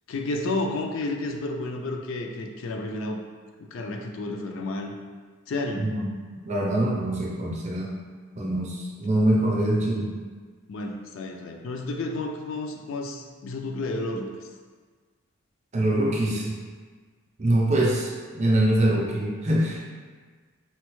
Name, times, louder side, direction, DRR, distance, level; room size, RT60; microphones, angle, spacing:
voice 1, 0.1-3.2 3.6-4.9 5.5-5.9 10.7-14.3, left 2 dB, 60° left, 3 dB, 0.3 m, -31 dB
voice 2, 6.5-7.9 8.4-10.2 15.7-16.6 17.4-19.8, right 1 dB, 30° right, -3 dB, 0.5 m, -24 dB
4.2 x 2.0 x 3.0 m, 1.5 s
head